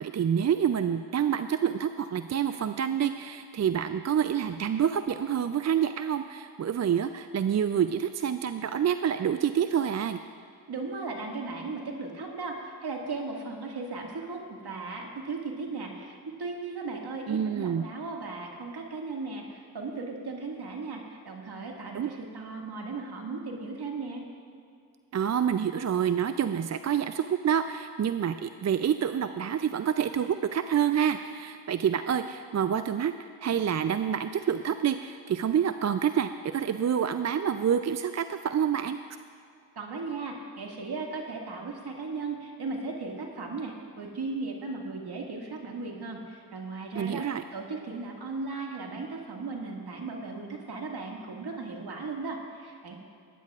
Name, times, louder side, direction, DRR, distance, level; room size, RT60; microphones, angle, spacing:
voice 1, 0.0-10.2 17.3-17.9 21.9-22.1 25.1-33.1 33.4-39.0 46.9-47.4, right 8 dB, 40° right, 10 dB, 0.4 m, -27 dB
voice 2, 10.7-24.2 39.8-47.2 47.5-53.0, right 3 dB, 55° right, 0 dB, 2.0 m, -36 dB
19.5 x 10.0 x 2.4 m, 2.4 s
supercardioid pair, 50°, 45 cm